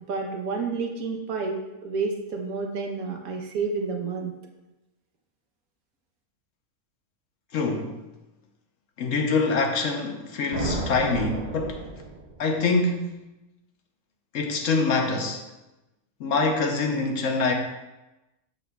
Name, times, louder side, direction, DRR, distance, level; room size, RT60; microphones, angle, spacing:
voice 1, 0.1-4.4, right 4 dB, 90° right, 2 dB, 1.4 m, -30 dB
voice 2, 7.5-8.0 9.0-11.8 12.4-13.2 14.3-15.4 16.2-17.5, left 3 dB, 65° left, 3 dB, 1.1 m, -25 dB
sound 1, 10.5-12.6, right 2 dB, 50° right, 0.5 m, -32 dB
7.2 x 6.3 x 2.3 m, 1.0 s
omnidirectional pair, 1.5 m